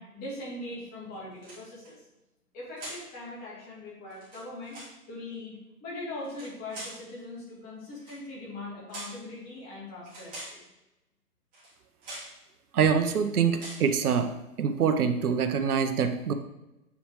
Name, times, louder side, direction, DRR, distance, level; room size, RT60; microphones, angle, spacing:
voice 1, 0.0-2.0 2.5-4.8 5.1-10.6, left 2 dB, 20° left, -6 dB, 3.0 m, -41 dB
sound 1, 1.3-1.9 2.8-3.1 4.1-5.0 6.2-7.0 8.0-8.2 8.9-9.2 10.0-10.6 11.5-11.7 12.0-12.4 12.9-13.2 13.5-13.9, right 1 dB, 20° right, 3.2 m, -43 dB
voice 2, 12.7-14.3 14.6-16.3, right 7 dB, 70° right, 7 dB, 0.9 m, -25 dB
8.5 x 7.0 x 3.2 m, 0.96 s
hypercardioid pair, 150°, 47 cm